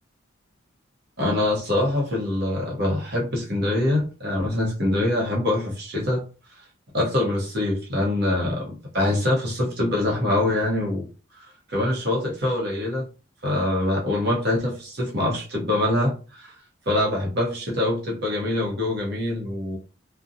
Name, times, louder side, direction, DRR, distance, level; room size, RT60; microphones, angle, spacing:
voice 1, 1.2-6.2 6.9-11.1 11.7-13.0 13.4-16.5 16.9-19.8, left 1 dB, 55° right, -2 dB, 0.8 m, -24 dB
2.6 x 2.1 x 2.5 m, 0.35 s
head